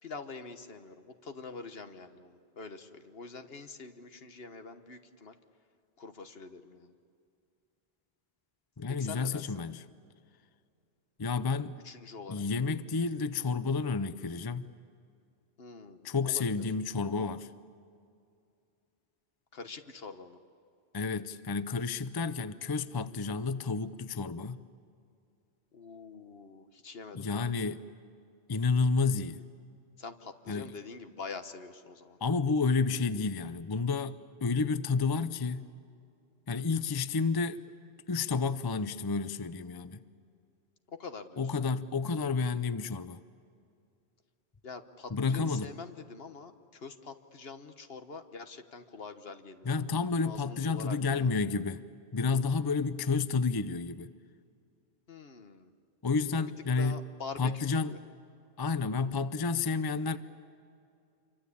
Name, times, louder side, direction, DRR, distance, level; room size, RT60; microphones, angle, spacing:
voice 1, 0.0-5.4 6.0-7.0 8.9-9.6 11.8-12.5 15.6-16.6 19.5-20.4 25.7-27.7 30.0-32.2 36.6-36.8 40.9-41.6 44.6-49.9 50.2-51.4 55.1-55.7 56.4-56.5 56.8-58.0, left 4 dB, 65° left, 8 dB, 1.5 m, -45 dB
voice 2, 8.8-9.8 11.2-11.8 12.3-14.7 16.0-17.5 20.9-24.6 27.1-27.8 28.5-29.4 30.5-30.7 32.2-35.7 36.5-37.6 38.1-40.0 41.4-43.2 45.1-45.7 49.7-51.8 52.1-54.1 56.0-57.0 57.4-57.9 58.6-60.2, left 4 dB, 25° left, 13 dB, 0.6 m, -30 dB
27.0 x 24.0 x 8.5 m, 2.4 s
omnidirectional pair, 1.1 m